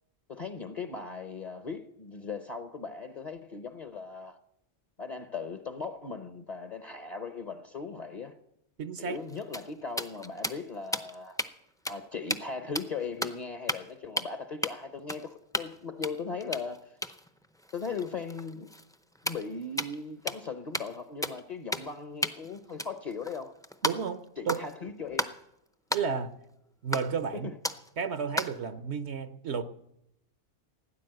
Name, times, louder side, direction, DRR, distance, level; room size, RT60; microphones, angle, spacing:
voice 1, 0.3-4.4 5.0-8.4 9.0-11.4 11.9-16.9 17.7-18.7 19.2-23.6 24.4-25.4 27.3-27.6, left 4 dB, 40° left, 0.9 m, -38 dB
voice 2, 8.8-9.2 23.8-24.2 24.5-24.6 25.9-26.3 26.8-27.5 28.0-29.6, right 6 dB, 75° right, 1.1 m, -32 dB
sound 1, 9.1-11.5 11.8-12.0 12.3-12.5 12.7-13.4 13.7-13.9 14.2-14.3 14.6-14.7 15.1-15.8 16.0-20.0 20.3-20.5 20.7-21.0 21.2-21.4 21.7-22.0 22.2-24.1 24.5-24.7 25.1-25.4 25.9-26.0 26.9-27.3 27.6-27.9 28.4-28.6, equal, 5° left, 0.5 m, -34 dB
17.0 x 10.0 x 7.7 m
omnidirectional pair, 1.2 m